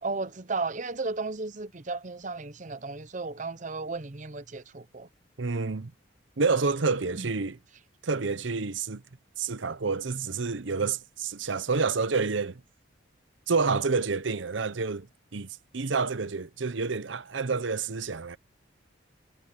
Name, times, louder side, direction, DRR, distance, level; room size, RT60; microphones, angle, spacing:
voice 1, 0.0-5.1 7.1-7.2, right 3 dB, 40° right, 0.8 m, -34 dB
voice 2, 5.4-5.9 6.4-7.6 8.0-9.0 9.4-12.6 13.5-18.4, right 4 dB, 70° right, 0.8 m, -28 dB
head